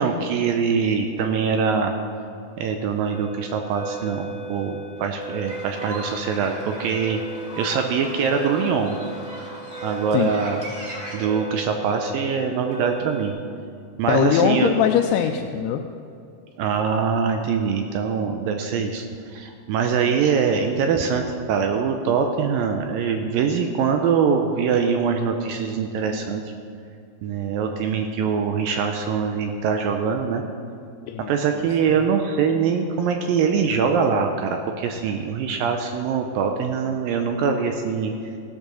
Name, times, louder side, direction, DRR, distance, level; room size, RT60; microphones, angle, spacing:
voice 1, 0.0-1.9 2.6-7.2 7.6-9.0 9.8-10.6 11.1-13.4 14.0-14.7 16.6-26.5 27.2-30.4 31.3-38.1, right 6 dB, 80° right, 5 dB, 2.1 m, -23 dB
sound 1, 3.0-13.3, right 2 dB, 25° left, 1.7 m, -37 dB
sound 2, 5.5-11.2, right 1 dB, 40° right, 1.5 m, -38 dB
voice 2, 14.1-15.9 31.1-31.3, left 9 dB, 90° left, 4 dB, 2.5 m, -21 dB
15.5 x 6.5 x 6.2 m, 2.5 s
omnidirectional pair, 4.5 m